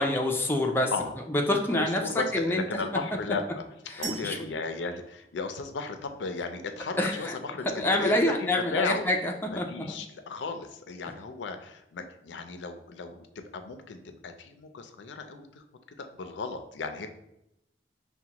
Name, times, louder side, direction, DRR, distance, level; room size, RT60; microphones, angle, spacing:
voice 1, 0.0-0.9 1.3-2.8 3.9-4.4 7.0-7.4 7.7-10.0, left 1 dB, 10° left, 1 dB, 0.4 m, -27 dB
voice 2, 1.7-3.6 4.0-9.1 9.5-15.6 16.0-17.1, left 4 dB, 85° left, 7 dB, 0.4 m, -35 dB
sound 1, 4.0-6.0, right 7 dB, 80° right, 0.4 m, -43 dB
5.8 x 2.2 x 2.9 m, 0.82 s
head